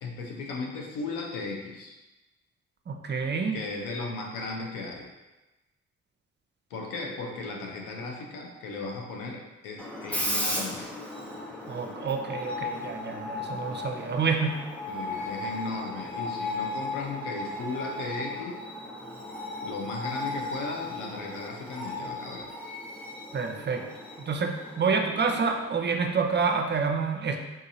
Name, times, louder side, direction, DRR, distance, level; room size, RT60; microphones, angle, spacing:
voice 1, 0.0-2.0 3.5-5.1 6.7-10.9 14.9-18.6 19.6-22.5, left 3 dB, 85° left, 1 dB, 0.6 m, -36 dB
voice 2, 2.9-3.6 11.7-14.6 23.3-23.9 24.2-27.4, right 5 dB, 35° right, 4 dB, 0.5 m, -28 dB
Screech, 9.8-26.4, left 2 dB, 5° left, 0.7 m, -36 dB
3.7 x 2.7 x 2.7 m, 1.1 s
hypercardioid pair, 45°, 32 cm